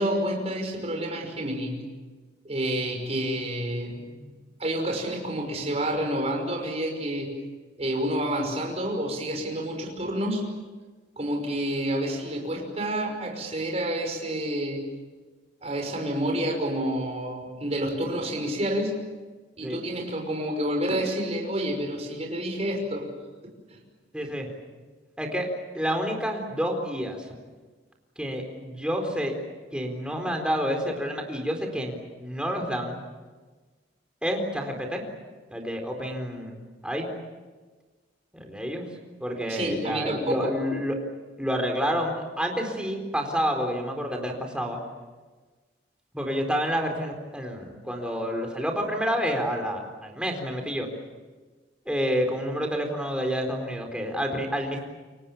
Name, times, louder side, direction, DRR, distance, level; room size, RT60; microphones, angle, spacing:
voice 1, 0.0-1.8 2.4-4.1 4.6-7.3 7.8-10.4 11.2-14.8 15.6-18.9 19.6-23.1 23.7-23.8 39.5-40.5, right 1 dB, 35° right, 2 dB, 5.7 m, -29 dB
voice 2, 24.1-24.5 25.2-25.5 25.7-27.3 28.2-29.3 29.7-33.0 34.2-35.0 35.5-36.5 36.8-37.1 38.3-38.8 39.2-41.0 41.4-44.8 46.1-50.9 51.9-54.8, equal, 5° right, 2 dB, 4.2 m, -29 dB
29.0 x 24.5 x 7.2 m, 1.3 s
head